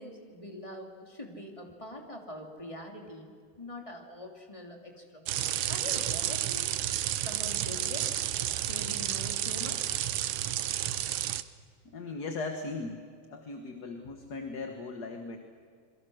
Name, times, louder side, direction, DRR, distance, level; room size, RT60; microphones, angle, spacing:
voice 1, 0.0-5.3 5.6-6.7 7.2-8.1 8.4-10.0, left 1 dB, 15° left, 1 dB, 2.9 m, -44 dB
sound 1, 5.3-11.4, right 12 dB, 75° right, 1.6 m, -31 dB
voice 2, 11.9-13.0 13.3-15.4, left 3 dB, 50° left, 4 dB, 1.9 m, -38 dB
27.5 x 22.5 x 6.4 m, 2.2 s
omnidirectional pair, 2.4 m